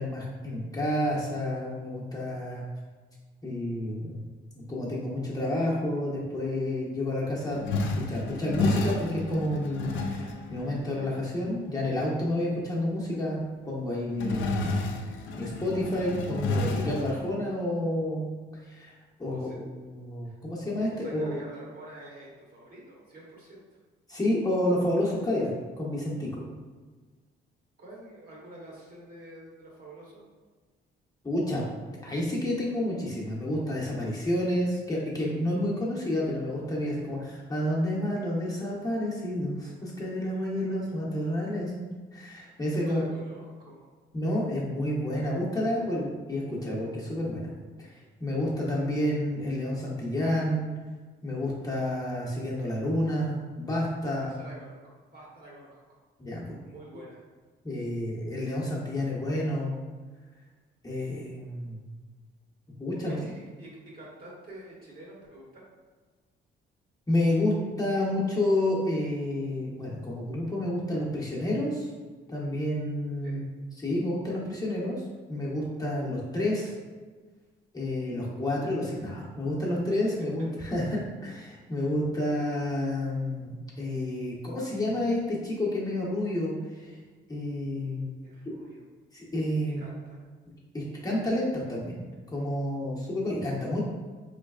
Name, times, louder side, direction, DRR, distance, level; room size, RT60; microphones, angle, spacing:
voice 1, 0.0-2.6 3.4-4.2 4.5-7.6 8.1-14.8 15.4-18.3 18.6-18.9 19.2-21.4 24.1-26.4 31.2-31.7 32.0-43.0 44.1-47.5 47.9-50.7 51.2-54.4 56.2-56.6 57.6-59.7 60.8-61.8 62.8-63.2 67.1-71.9 72.3-73.4 73.8-75.0 75.3-76.7 77.7-87.0 87.3-88.1 89.1-89.8 90.7-93.8, left 1 dB, 20° left, -5 dB, 0.9 m, -30 dB
sound 1, 7.5-11.3 12.3-12.4 14.1-17.3, left 2 dB, 75° left, 0.4 m, -30 dB
voice 2, 20.9-23.6 27.8-30.2 40.3-40.7 42.8-43.9 54.0-56.0 56.6-57.2 63.0-65.6 73.2-73.4 88.2-88.8 89.7-90.2, right 1 dB, 50° right, -4 dB, 1.3 m, -47 dB
3.9 x 3.2 x 2.4 m, 1.4 s
cardioid pair, 90°, 20 cm